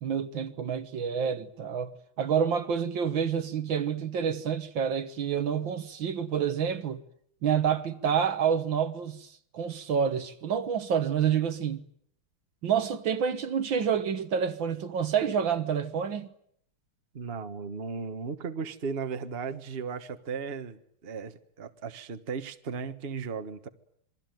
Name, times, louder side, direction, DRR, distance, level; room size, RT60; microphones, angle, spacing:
voice 1, 0.0-1.9 2.2-7.0 7.4-11.8 12.6-16.3, right 7 dB, 65° right, 2.0 m, -28 dB
voice 2, 17.1-23.7, right 5 dB, 30° right, 1.4 m, -36 dB
27.5 x 22.5 x 9.3 m
omnidirectional pair, 2.3 m